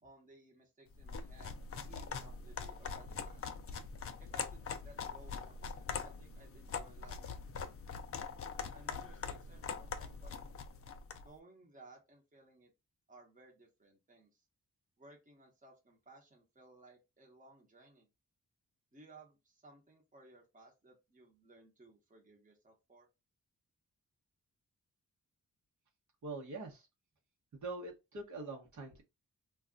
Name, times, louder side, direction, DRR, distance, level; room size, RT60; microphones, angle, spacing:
voice 1, 0.0-1.6 1.9-3.4 4.2-7.7 8.7-10.3 11.2-12.7 13.1-14.5 15.0-18.1 18.9-23.1, right 2 dB, 25° right, 0.9 m, -60 dB
sound 1, 1.0-11.3, left 5 dB, 45° left, 0.4 m, -43 dB
voice 2, 26.2-26.9 27.5-29.0, right 3 dB, 60° right, 1.0 m, -44 dB
2.3 x 2.2 x 3.7 m
wide cardioid pair, 125°, 34 cm